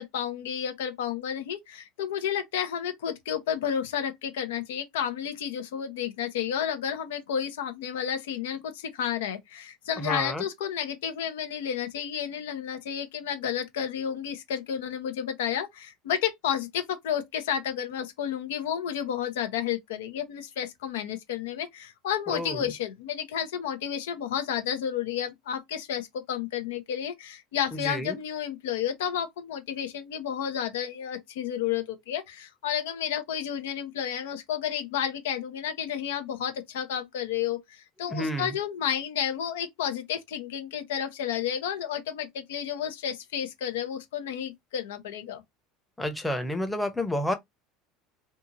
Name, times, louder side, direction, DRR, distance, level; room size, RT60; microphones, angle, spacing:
voice 1, 0.0-45.4, left 9 dB, 85° left, 0.7 m, -31 dB
voice 2, 10.0-10.4 22.3-22.6 27.7-28.2 38.1-38.5 46.0-47.3, left 1 dB, 5° left, 0.7 m, -30 dB
2.8 x 2.4 x 2.7 m
supercardioid pair, 100°, 0 cm